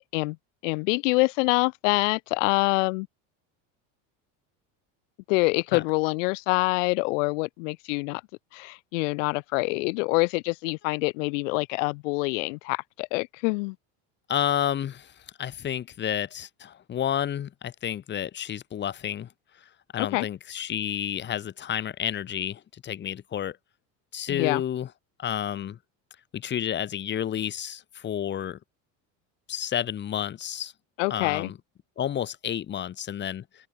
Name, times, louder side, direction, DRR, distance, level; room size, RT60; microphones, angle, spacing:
voice 1, 0.6-3.1 5.3-8.2 8.5-13.8 20.0-20.3 24.3-24.6 31.0-31.5, left 27 dB, 85° left, 1.9 m, -26 dB
voice 2, 14.3-15.1 15.4-19.3 19.9-23.6 24.1-24.9 25.2-25.8 26.3-28.6 29.5-30.7 31.1-31.6 32.0-33.7, left 10 dB, 30° left, 3.0 m, -30 dB
open air
cardioid pair, 155°, 37 cm